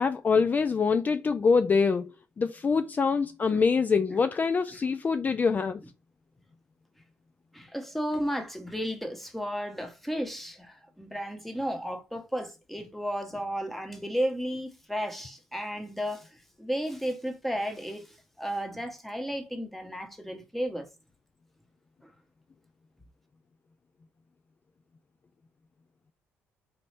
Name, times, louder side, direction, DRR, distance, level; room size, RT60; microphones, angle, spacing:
voice 1, 0.0-2.1 2.4-5.8, left 5 dB, 35° left, 0.4 m, -25 dB
voice 2, 7.5-20.9 22.0-22.1, equal, 5° left, 1.2 m, -33 dB
4.1 x 2.6 x 3.3 m
supercardioid pair, 65°, 5 cm